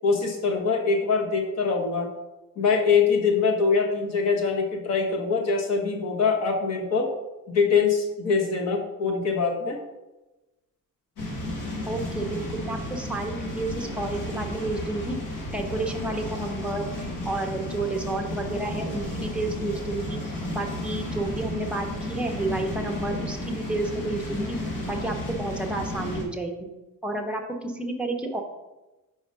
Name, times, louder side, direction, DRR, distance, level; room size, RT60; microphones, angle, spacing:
voice 1, 0.0-2.1 2.6-7.1 7.5-9.8, left 5 dB, 50° left, 2 dB, 1.2 m, -23 dB
sound 1, 11.2-26.2, left 1 dB, 65° left, 1.7 m, -33 dB
voice 2, 11.9-15.2 15.5-16.9 17.2-20.2 20.5-24.6 24.9-26.7 27.0-28.4, right 2 dB, 5° right, 1 dB, 0.7 m, -31 dB
5.2 x 4.9 x 5.4 m, 1.1 s
cardioid pair, 175°, 34 cm